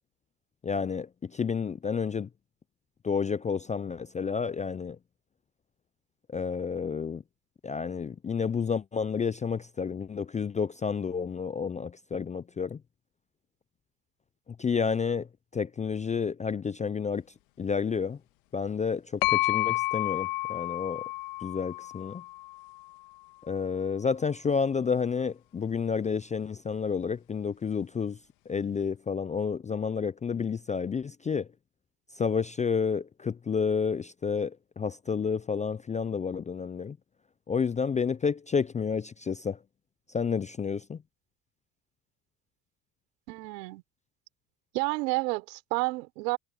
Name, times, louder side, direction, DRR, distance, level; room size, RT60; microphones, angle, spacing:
voice 1, 0.6-1.1 1.3-2.3 3.0-5.0 6.3-7.2 7.6-12.8 14.6-15.3 15.5-17.2 17.6-18.2 18.5-19.0 19.3-21.0 21.4-22.2 23.5-28.2 28.5-31.5 32.2-34.5 34.8-37.0 37.5-39.6 40.1-41.0, left 6 dB, 15° left, 0.4 m, -30 dB
sound 1, 19.2-23.0, left 22 dB, 70° left, 2.6 m, -30 dB
voice 2, 43.3-43.8 44.7-46.4, right 25 dB, 75° right, 3.8 m, -30 dB
hypercardioid pair, 90°, 49 cm